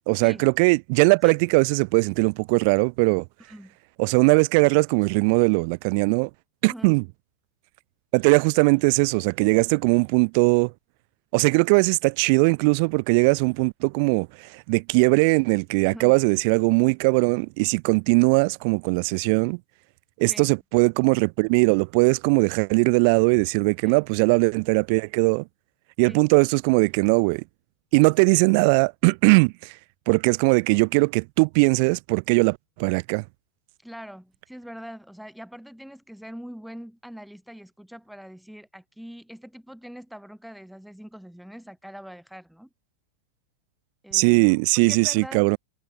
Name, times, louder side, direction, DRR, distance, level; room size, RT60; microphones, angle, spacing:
voice 1, 0.1-3.2 4.0-6.3 6.6-7.0 8.1-10.7 11.3-14.3 14.5-19.6 20.2-25.4 26.0-27.4 27.9-29.7 30.1-33.2 44.1-45.6, right 33 dB, 45° right, 0.4 m, -20 dB
voice 2, 3.4-3.8 6.7-7.0 15.9-16.2 20.3-20.5 23.8-24.0 26.1-26.2 28.3-28.5 33.8-42.7 44.0-45.4, equal, ahead, 3.5 m, -43 dB
figure-of-eight pair, 90°, 0 cm